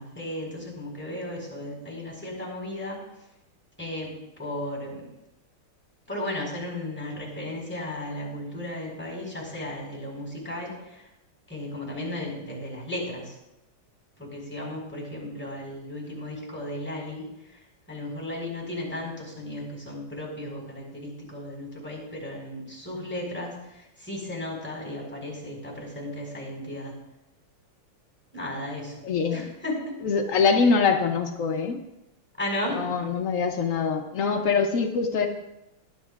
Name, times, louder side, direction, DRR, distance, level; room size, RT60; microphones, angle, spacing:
voice 1, 0.0-3.0 3.8-5.1 6.1-11.1 11.5-13.4 14.2-17.2 17.5-17.6 17.9-26.9 28.3-28.9 29.3-29.9 32.4-32.8, left 1 dB, 5° left, -2 dB, 4.5 m, -35 dB
voice 2, 29.0-29.4 30.0-31.8 32.7-35.3, left 5 dB, 80° left, 3 dB, 0.7 m, -24 dB
20.0 x 11.0 x 2.5 m, 0.91 s
omnidirectional pair, 2.4 m